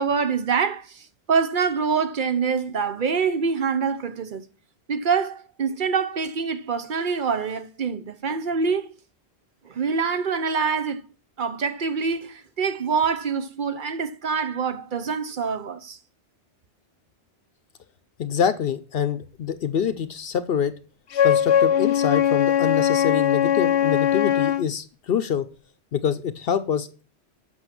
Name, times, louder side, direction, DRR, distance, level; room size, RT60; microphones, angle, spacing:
voice 1, 0.0-4.4 4.9-8.9 9.6-11.0 11.4-16.0, right 5 dB, 55° right, 0.8 m, -25 dB
voice 2, 18.2-20.7 21.2-25.5 25.9-27.0, left 8 dB, 65° left, 0.8 m, -25 dB
Wind instrument woodwind instrument, 21.1-24.7, left 10 dB, 85° left, 1.0 m, -20 dB
8.0 x 6.0 x 5.9 m
omnidirectional pair, 1.1 m